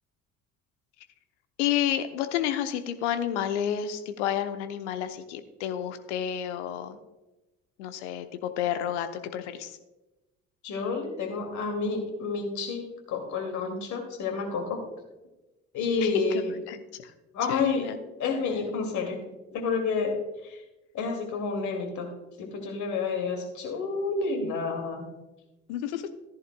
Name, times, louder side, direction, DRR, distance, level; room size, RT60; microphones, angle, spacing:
voice 1, 1.6-7.0 7.8-9.8 16.0-16.1 16.7-17.1 17.5-18.0 25.7-26.1, left 10 dB, 65° left, 10 dB, 0.9 m, -30 dB
voice 2, 10.6-14.8 15.7-16.6 17.3-17.9 18.2-19.2 19.5-20.2 20.4-20.6 20.9-22.1 22.4-25.1, left 4 dB, 50° left, 3 dB, 2.4 m, -29 dB
14.0 x 10.5 x 2.3 m, 1.0 s
figure-of-eight pair, 55°, 38 cm